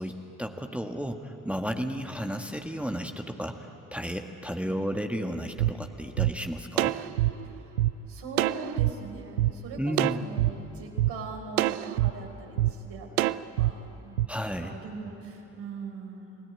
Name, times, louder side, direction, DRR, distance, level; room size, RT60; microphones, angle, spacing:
voice 1, 0.0-7.0 9.8-10.2 14.3-14.8, equal, 5° right, 4 dB, 1.7 m, -33 dB
voice 2, 4.6-4.9 7.4-7.7 8.1-14.2 14.6-16.4, right 4 dB, 65° right, 1 dB, 4.7 m, -41 dB
sound 1, 5.6-5.7 6.2-6.3 6.8-7.9 8.4-8.9 9.4-9.5 10.0-10.5 11.0-11.1 11.6-12.1 12.6-12.7 13.2-13.7 14.2-14.3, right 15 dB, 80° right, 0.5 m, -25 dB
29.5 x 18.5 x 9.8 m, 3.0 s
figure-of-eight pair, 45°, 43 cm